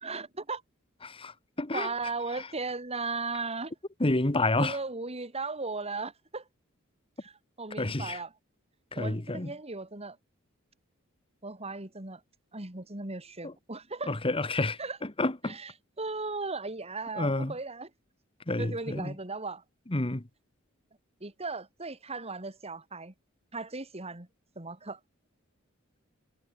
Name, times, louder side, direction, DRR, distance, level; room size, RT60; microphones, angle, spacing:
voice 1, 0.0-0.6 1.7-3.7 4.6-6.5 7.2-8.3 8.9-10.2 11.4-12.2 12.5-14.2 14.8-15.0 15.4-17.9 18.6-19.6 21.2-23.1 23.5-24.3 24.5-25.0, right 3 dB, 30° right, 3.0 m, -37 dB
voice 2, 1.6-1.9 4.0-4.8 7.8-8.2 8.9-9.5 13.4-13.5 14.1-14.8 15.2-15.6 17.2-17.5 18.5-19.1 19.9-20.2, left 2 dB, 25° left, 1.5 m, -29 dB
head